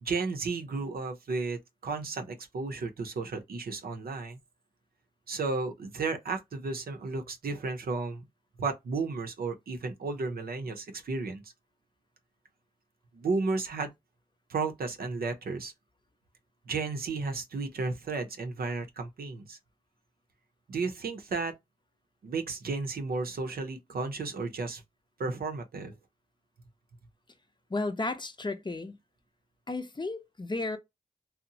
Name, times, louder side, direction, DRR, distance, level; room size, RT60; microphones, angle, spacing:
voice 1, 0.0-4.4 5.3-8.3 8.6-11.5 13.1-13.9 14.5-15.7 16.7-19.6 20.7-21.5 22.2-24.8 25.2-25.9, right 4 dB, 90° right, 0.6 m, -33 dB
voice 2, 27.7-29.0 29.7-30.8, left 2 dB, 30° left, 0.5 m, -33 dB
2.8 x 2.0 x 2.6 m
cardioid pair, 45°, 15 cm